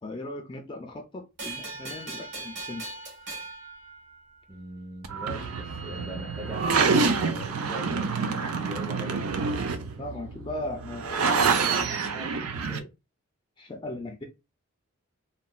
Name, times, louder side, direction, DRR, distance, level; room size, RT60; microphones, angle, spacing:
voice 1, 0.0-2.8 10.0-12.4 12.7-12.9 13.6-14.2, left 1 dB, 20° left, 0.3 m, -38 dB
sound 1, 1.4-4.6, right 3 dB, 50° right, 1.3 m, -39 dB
voice 2, 4.5-9.3, equal, 15° right, 0.6 m, -41 dB
sound 2, 5.0-12.8, right 5 dB, 80° right, 0.5 m, -27 dB
3.9 x 2.2 x 2.3 m
head